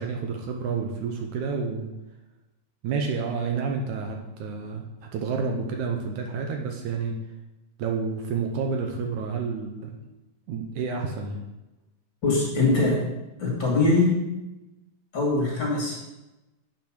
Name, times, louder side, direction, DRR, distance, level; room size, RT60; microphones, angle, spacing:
voice 1, 0.0-1.9 2.8-4.8 5.1-7.1 7.8-10.0 10.5-11.4, right 5 dB, 75° right, 2 dB, 2.1 m, -29 dB
voice 2, 12.2-13.0 13.4-14.2 15.1-16.0, left 3 dB, 40° left, -3 dB, 2.8 m, -22 dB
8.7 x 5.8 x 6.3 m, 1.0 s
omnidirectional pair, 3.9 m